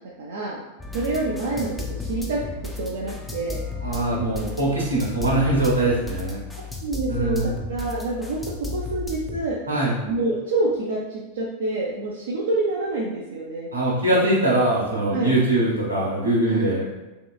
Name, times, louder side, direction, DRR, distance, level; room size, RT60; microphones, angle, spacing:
voice 1, 0.2-0.6 0.9-1.7 2.0-3.6 6.8-9.6 10.0-13.7 15.1-15.3 16.5-16.6, right 2 dB, 60° right, -4 dB, 0.4 m, -27 dB
sound 1, 0.8-9.4, left 4 dB, 5° left, 0.4 m, -34 dB
voice 2, 3.8-6.4 7.1-7.5 9.7-10.0 13.7-16.8, right 1 dB, 80° right, -5 dB, 1.0 m, -22 dB
3.0 x 2.8 x 2.2 m, 1.1 s
figure-of-eight pair, 90°, 0 cm